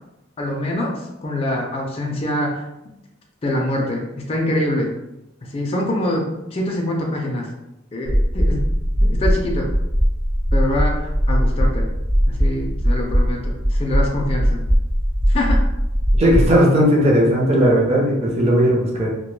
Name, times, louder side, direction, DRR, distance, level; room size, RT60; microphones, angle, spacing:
voice 1, 0.4-2.9 3.4-4.9 5.4-7.5 7.9-8.7 9.0-9.7 10.5-11.9 12.3-14.6 15.3-15.6, left 1 dB, 30° left, -1 dB, 0.3 m, -24 dB
sound 1, 8.1-16.5, equal, 85° right, 0.8 m, -19 dB
voice 2, 16.1-19.1, equal, 30° right, -3 dB, 0.5 m, -16 dB
2.1 x 2.1 x 3.1 m, 0.91 s
head